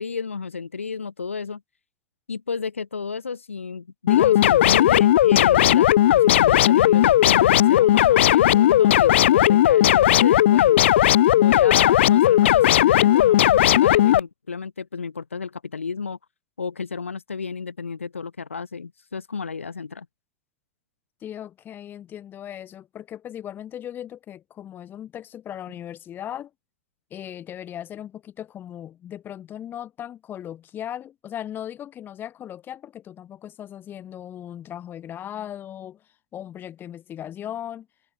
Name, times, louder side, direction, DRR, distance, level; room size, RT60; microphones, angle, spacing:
voice 1, 0.0-1.6 2.3-10.9 11.4-16.2 16.6-20.1, left 5 dB, 80° left, 2.8 m, -32 dB
sound 1, 4.1-14.2, left 13 dB, 60° left, 0.4 m, -16 dB
voice 2, 21.2-26.5 27.1-36.0 36.3-37.9, left 10 dB, 30° left, 3.3 m, -37 dB
figure-of-eight pair, 90°, 7 cm